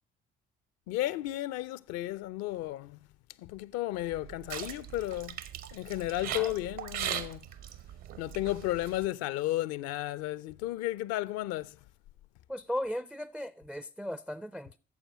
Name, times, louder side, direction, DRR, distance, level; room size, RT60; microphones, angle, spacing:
voice 1, 0.9-3.0 3.4-5.4 5.7-7.4 8.2-11.8, left 15 dB, 55° left, 0.5 m, -33 dB
sound 1, 4.0-9.1, right 10 dB, 55° right, 0.8 m, -40 dB
voice 2, 6.2-6.6 12.5-14.8, equal, 5° right, 0.4 m, -37 dB
9.4 x 7.0 x 5.0 m
figure-of-eight pair, 50°, 31 cm